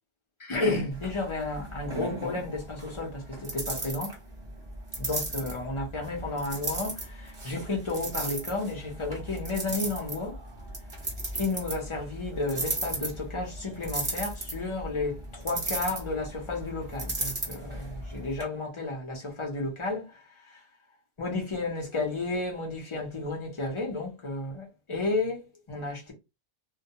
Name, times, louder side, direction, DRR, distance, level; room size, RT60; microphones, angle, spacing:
voice 1, 0.4-4.2 5.0-10.4 11.3-20.6 21.2-26.1, left 2 dB, 30° left, 0.6 m, -32 dB
sound 1, 0.9-18.4, right 2 dB, 30° right, 0.8 m, -36 dB
2.2 x 2.1 x 2.8 m
omnidirectional pair, 1.2 m